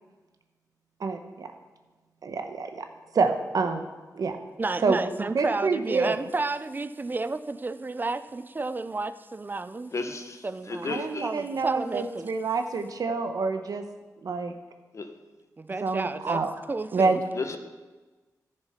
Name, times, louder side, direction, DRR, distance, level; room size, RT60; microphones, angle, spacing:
voice 1, 1.0-1.5 2.2-2.9 3.1-3.8 4.1-4.4 4.8-5.0 5.3-6.2 10.8-13.9 14.2-14.5 15.8-16.5 16.9-17.2, right 4 dB, 70° right, 1.0 m, -27 dB
voice 2, 4.6-9.9 10.4-12.3 15.6-17.2, right 3 dB, 30° right, 0.5 m, -31 dB
voice 3, 9.9-11.3 14.9-15.1 17.3-17.6, left 3 dB, 50° left, 1.1 m, -33 dB
14.0 x 6.8 x 4.4 m
wide cardioid pair, 95°, 7 cm